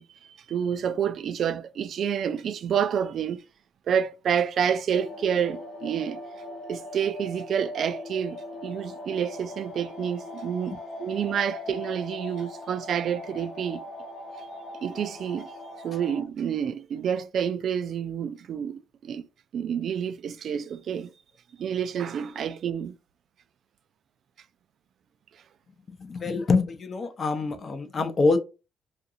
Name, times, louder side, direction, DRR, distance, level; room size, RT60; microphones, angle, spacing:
voice 1, 0.0-3.4 3.9-6.2 6.7-13.8 14.4-14.5 14.8-15.5 15.8-19.3 19.5-21.1 21.6-23.0, right 8 dB, 65° right, 0.3 m, -29 dB
sound 1, 4.9-16.2, left 2 dB, 75° left, 0.8 m, -40 dB
voice 2, 25.9-28.4, left 3 dB, 40° left, 0.7 m, -25 dB
2.5 x 2.4 x 2.7 m
cardioid pair, 90°, 0 cm